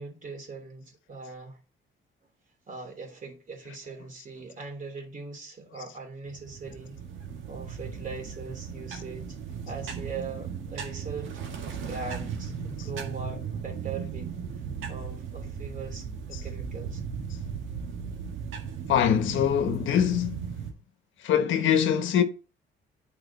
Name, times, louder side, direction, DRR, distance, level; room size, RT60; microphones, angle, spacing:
voice 1, 0.0-1.6 2.7-6.9 7.5-9.4 9.7-11.3 11.6-14.3 14.9-17.0, right 4 dB, 40° right, 3.1 m, -40 dB
sound 1, 6.2-20.7, right 6 dB, 80° right, 1.9 m, -36 dB
voice 2, 18.9-20.5 21.2-22.2, left 9 dB, 80° left, 1.1 m, -23 dB
8.9 x 4.9 x 4.2 m
cardioid pair, 90°, 20 cm